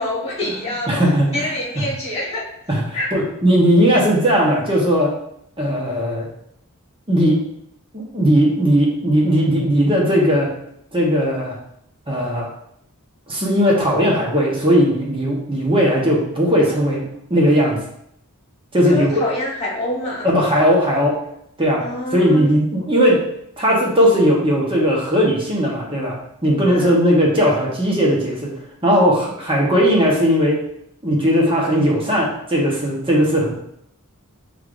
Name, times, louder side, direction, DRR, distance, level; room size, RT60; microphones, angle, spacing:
voice 1, 0.0-0.9 1.3-2.5 2.9-3.1 14.0-14.3 18.9-20.3 21.8-22.5 26.7-27.0, left 1 dB, 30° left, -5 dB, 1.4 m, -26 dB
voice 2, 0.9-1.5 1.7-1.8 2.7-2.8 3.1-5.1 5.6-6.3 7.1-7.4 7.9-10.5 10.9-11.6 12.1-12.5 13.3-17.0 17.3-17.8 18.7-19.2 20.2-21.1 21.6-21.8 22.1-23.2 23.6-26.2 26.4-28.5 28.8-30.6 31.0-33.5, equal, 25° right, -3 dB, 1.0 m, -17 dB
5.5 x 3.3 x 2.5 m, 0.73 s
head